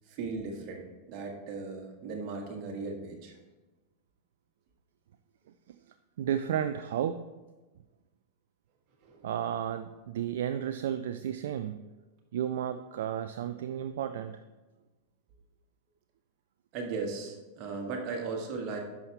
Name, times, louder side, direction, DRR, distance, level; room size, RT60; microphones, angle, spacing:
voice 1, 0.1-3.3 9.0-9.2 16.7-18.8, right 4 dB, 40° right, 1 dB, 1.7 m, -37 dB
voice 2, 6.2-7.2 9.2-11.9 12.3-14.4, right 9 dB, 60° right, 10 dB, 0.3 m, -33 dB
10.5 x 6.1 x 3.5 m, 1.2 s
figure-of-eight pair, 90°, 0 cm